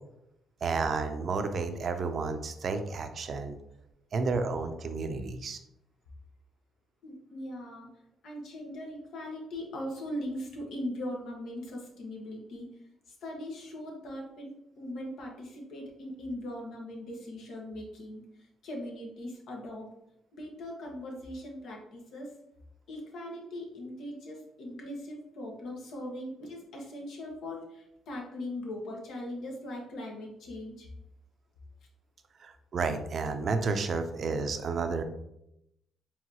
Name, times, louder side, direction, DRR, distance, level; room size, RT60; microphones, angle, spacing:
voice 1, 0.6-3.6 4.1-5.6 32.4-35.0, right 4 dB, 55° right, 7 dB, 0.6 m, -31 dB
voice 2, 7.0-7.9 8.2-12.7 13.2-19.9 20.3-22.3 22.9-30.9, left 1 dB, 75° left, 0 dB, 1.3 m, -40 dB
4.7 x 3.5 x 2.9 m, 0.82 s
cardioid pair, 90°, 0 cm